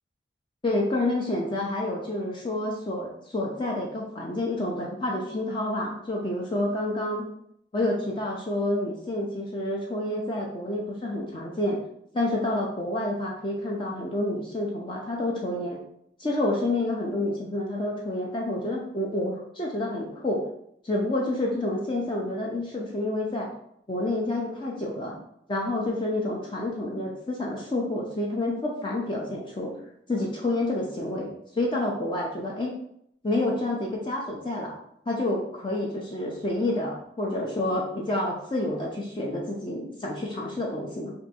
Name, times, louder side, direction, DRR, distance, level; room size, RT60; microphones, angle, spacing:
voice 1, 0.6-7.3 7.7-11.8 12.1-15.8 16.2-20.4 20.8-23.5 23.9-25.2 25.5-29.7 30.1-32.7 33.2-34.7 35.1-41.1, left 1 dB, 30° left, -2 dB, 0.5 m, -29 dB
3.4 x 2.6 x 4.1 m, 0.72 s
head